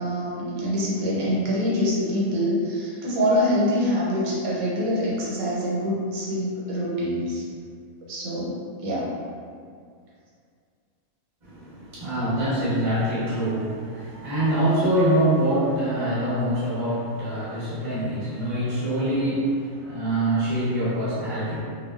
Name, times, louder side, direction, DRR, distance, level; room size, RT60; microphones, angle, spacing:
voice 1, 0.0-7.4 8.1-9.1, equal, 90° right, -7 dB, 1.1 m, -25 dB
voice 2, 11.4-21.6, right 1 dB, 35° right, -11 dB, 1.0 m, -24 dB
2.7 x 2.0 x 2.3 m, 2.1 s
omnidirectional pair, 1.5 m